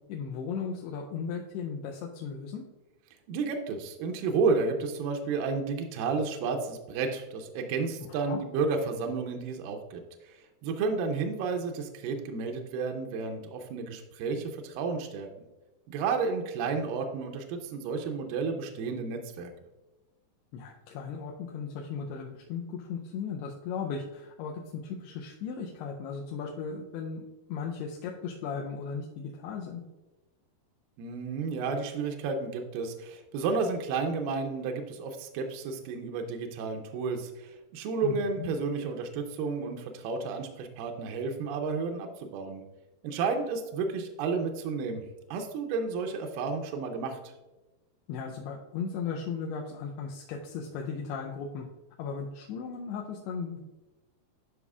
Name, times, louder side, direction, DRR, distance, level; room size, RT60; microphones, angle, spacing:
voice 1, 0.1-2.6 8.1-8.4 20.5-27.2 27.5-29.8 38.0-38.5 48.1-51.7 52.0-53.6, left 6 dB, 85° left, 0 dB, 2.7 m, -36 dB
voice 2, 3.3-10.4 10.6-15.3 15.9-19.5 31.0-42.6 43.0-45.0 45.3-47.3, right 4 dB, 85° right, 4 dB, 2.1 m, -32 dB
11.0 x 5.4 x 2.4 m, 1.1 s
omnidirectional pair, 4.6 m